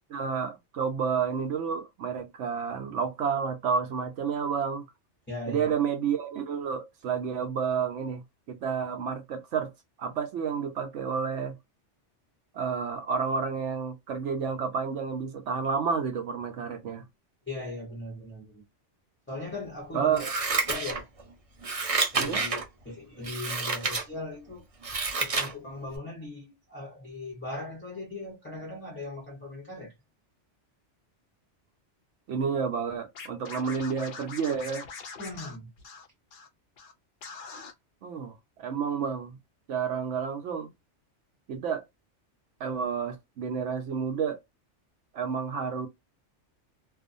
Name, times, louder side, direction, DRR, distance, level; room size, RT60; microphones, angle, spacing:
voice 1, 0.1-4.8 5.5-8.2 8.5-9.7 10.0-11.6 12.5-17.0 19.9-20.3 22.2-22.5 32.3-34.8 38.0-39.4 39.7-40.7 41.5-41.8 42.6-44.4 45.1-45.9, right 6 dB, 80° right, 0.9 m, -30 dB
voice 2, 5.3-5.7 17.5-18.6 19.3-20.2 20.7-21.0 22.1-24.6 25.2-29.9 35.2-35.7, left 2 dB, 10° left, 0.7 m, -39 dB
Scissors, 20.1-21.2 21.6-22.6 23.2-24.0 24.5-25.5 25.9-26.0, right 4 dB, 40° right, 0.6 m, -29 dB
Scratching (performance technique), 33.1-36.5 36.8-36.9 37.2-37.7, left 5 dB, 55° left, 0.7 m, -43 dB
2.5 x 2.4 x 2.5 m
omnidirectional pair, 1.2 m